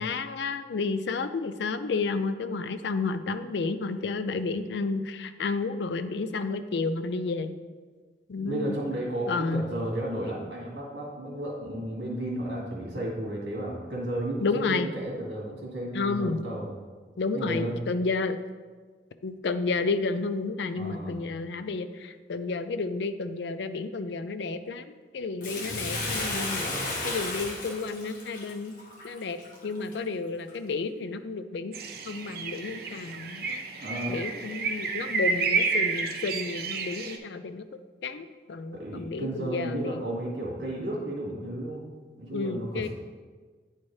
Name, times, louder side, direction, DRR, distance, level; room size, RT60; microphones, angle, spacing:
voice 1, 0.0-7.5 8.3-8.8 9.3-9.6 14.4-14.9 15.9-16.4 17.2-18.4 19.2-28.7 29.0-29.4 29.6-37.6 38.0-40.0 42.3-42.9, left 4 dB, 80° left, 11 dB, 0.4 m, -31 dB
voice 2, 8.4-16.7 17.3-17.8 20.8-21.2 26.7-27.0 33.8-34.2 38.7-41.8 42.2-42.9, right 1 dB, 85° right, -3 dB, 2.1 m, -33 dB
Bathtub (filling or washing), 25.4-29.9 30.5-30.6, left 2 dB, 50° left, 1.0 m, -33 dB
sound 1, 31.7-37.2, right 4 dB, 55° right, 0.6 m, -30 dB
9.6 x 4.4 x 3.2 m, 1.4 s
head